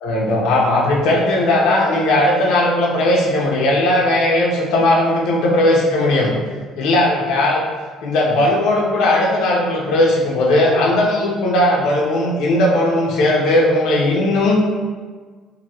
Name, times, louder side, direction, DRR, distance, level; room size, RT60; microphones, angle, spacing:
voice 1, 0.0-6.3 6.8-7.6 8.0-14.6, left 1 dB, 60° left, -2 dB, 0.6 m, -17 dB
2.9 x 2.6 x 2.7 m, 1.5 s
cardioid pair, 175°, 0 cm